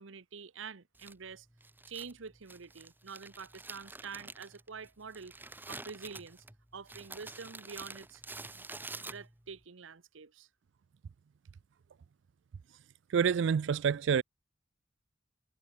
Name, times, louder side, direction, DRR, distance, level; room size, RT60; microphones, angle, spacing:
voice 1, 0.0-1.5 1.9-5.3 5.7-6.4 6.7-8.2 8.5-8.7 9.0-10.5, right 5 dB, 85° right, 0.9 m, -47 dB
Crumpling crinkling, 1.0-9.6, right 3 dB, 10° right, 1.1 m, -48 dB
voice 2, 13.1-14.2, right 7 dB, 70° right, 0.3 m, -27 dB
head